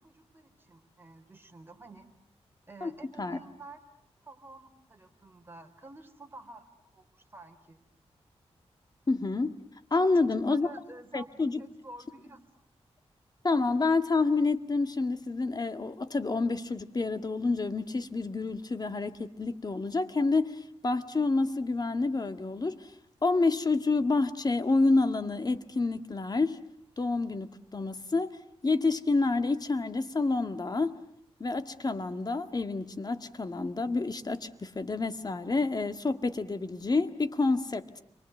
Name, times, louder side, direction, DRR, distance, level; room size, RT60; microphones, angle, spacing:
voice 1, 0.0-2.1 2.7-3.8 4.2-7.8 9.9-12.6, right 2 dB, 20° right, 4.2 m, -50 dB
voice 2, 9.1-9.5 9.9-10.7 11.1-11.6 13.4-22.9 23.2-26.6 27.0-31.0 31.4-38.0, left 3 dB, 35° left, 1.9 m, -28 dB
30.0 x 24.0 x 8.0 m
cardioid pair, 75°, 11 cm